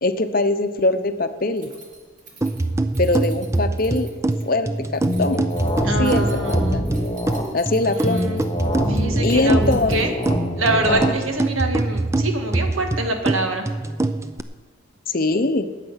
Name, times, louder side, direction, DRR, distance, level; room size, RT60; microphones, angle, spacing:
voice 1, 0.0-1.7 3.0-4.1 4.4-5.4 6.0-6.8 7.5-8.3 9.2-10.0 10.9-11.1 15.1-15.7, left 2 dB, 45° left, 9 dB, 0.8 m, -22 dB
Keys jangling, 1.6-10.6, right 4 dB, 40° right, 2.7 m, -46 dB
sound 1, 2.4-14.4, right 2 dB, 15° right, 0.4 m, -24 dB
sound 2, 5.1-7.4 8.0-11.1, left 1 dB, 25° left, 1.5 m, -25 dB
voice 2, 5.8-6.8 8.0-8.4 8.9-10.1 10.6-13.6, right 2 dB, 80° right, 4 dB, 2.0 m, -25 dB
20.5 x 8.2 x 5.7 m, 1.5 s
head